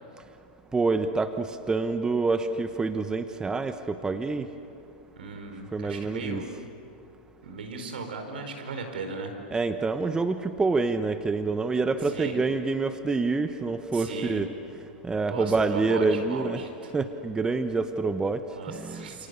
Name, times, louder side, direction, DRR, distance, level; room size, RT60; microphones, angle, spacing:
voice 1, 0.7-4.5 5.7-6.4 9.5-14.5 15.0-16.6 16.9-18.4 18.7-19.1, right 3 dB, 15° right, 9 dB, 1.1 m, -27 dB
voice 2, 5.1-6.5 7.4-9.3 12.0-12.4 13.9-14.4 15.3-16.9 18.5-19.3, right 3 dB, 75° right, 5 dB, 4.7 m, -37 dB
29.0 x 28.0 x 7.0 m, 2.7 s
hypercardioid pair, 100°, 5 cm